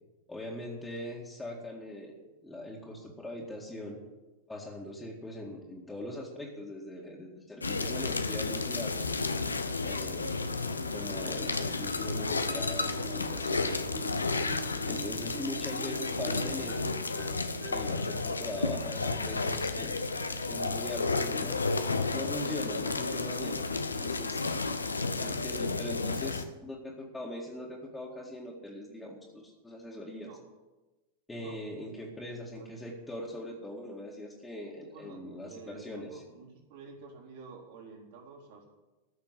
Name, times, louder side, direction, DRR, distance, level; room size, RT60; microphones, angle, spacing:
voice 1, 0.3-2.2 2.4-4.0 4.5-9.1 9.8-10.4 10.9-13.8 14.9-16.9 17.7-20.0 20.5-21.6 22.1-24.4 25.2-30.3 31.3-36.2, left 1 dB, 10° left, -3 dB, 2.1 m, -41 dB
sound 1, 7.6-26.4, left 3 dB, 80° left, 0.9 m, -32 dB
sound 2, 8.8-20.2, right 1 dB, 90° right, 1.5 m, -52 dB
Marimba xylophone, 12.5-13.5 13.9-19.4, right 7 dB, 30° right, 1.2 m, -46 dB
voice 2, 31.3-31.6 32.5-32.9 34.9-38.7, right 5 dB, 50° right, -1 dB, 3.9 m, -50 dB
14.5 x 6.6 x 9.9 m, 1.1 s
figure-of-eight pair, 90°, 0 cm